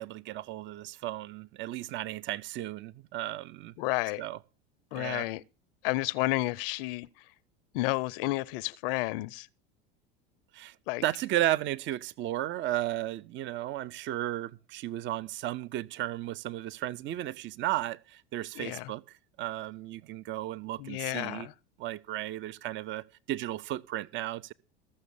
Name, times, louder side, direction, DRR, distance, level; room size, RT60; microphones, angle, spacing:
voice 1, 0.0-3.7 4.2-4.4 4.9-5.3 10.5-10.7 11.0-19.0 19.4-21.5 21.8-24.5, right 14 dB, 40° right, 0.6 m, -34 dB
voice 2, 3.8-4.2 4.9-5.4 5.8-7.1 7.7-9.5 10.9-11.0 18.6-18.9 20.8-21.5, left 20 dB, 65° left, 0.5 m, -31 dB
14.5 x 6.4 x 6.9 m
hypercardioid pair, 90°, 30 cm